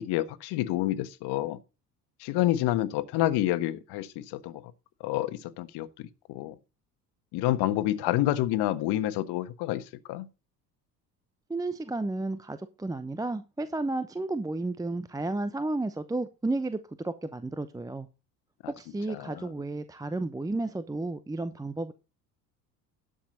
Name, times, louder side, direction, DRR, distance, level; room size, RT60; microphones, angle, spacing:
voice 1, 0.0-1.6 2.2-4.6 5.0-6.6 7.3-10.3 19.1-19.5, left 14 dB, 55° left, 1.4 m, -28 dB
voice 2, 11.5-16.8 17.0-18.1 18.7-21.9, right 2 dB, 5° right, 0.8 m, -32 dB
11.5 x 7.3 x 4.1 m
figure-of-eight pair, 65°, 49 cm